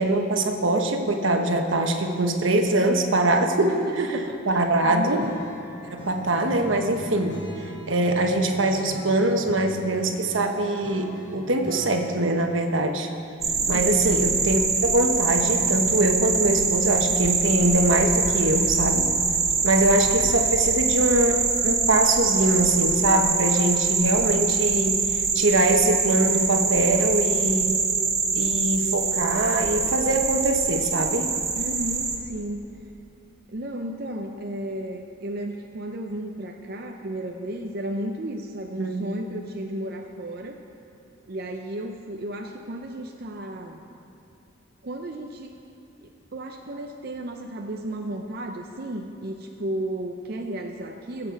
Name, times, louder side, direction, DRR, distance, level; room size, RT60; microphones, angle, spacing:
voice 1, 0.0-3.8 4.5-5.2 5.8-13.1 13.7-19.1 19.6-27.7 28.3-31.3 38.8-39.0, right 2 dB, 80° right, 4 dB, 1.2 m, -23 dB
voice 2, 3.6-5.4 13.7-14.1 19.7-19.8 20.1-20.3 31.5-32.7 33.5-40.6 41.3-43.9 44.8-45.5 46.0-51.3, right 1 dB, 50° right, 2 dB, 0.6 m, -33 dB
Acoustic guitar / Strum, 5.2-12.4, equal, 55° left, 3.8 m, -40 dB
sound 1, 13.4-32.2, right 5 dB, 35° right, 1.3 m, -24 dB
22.0 x 7.7 x 4.7 m, 2.7 s
head